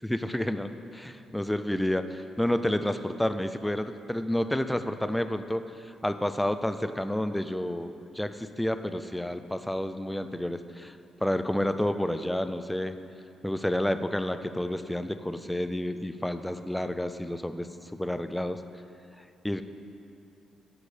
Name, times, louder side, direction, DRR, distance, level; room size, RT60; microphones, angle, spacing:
voice 1, 0.1-5.6 6.0-10.9 11.2-13.0 13.4-18.6 19.4-19.6, left 1 dB, 5° left, 10 dB, 0.3 m, -30 dB
10.5 x 8.3 x 4.9 m, 2.6 s
cardioid pair, 180°, 0 cm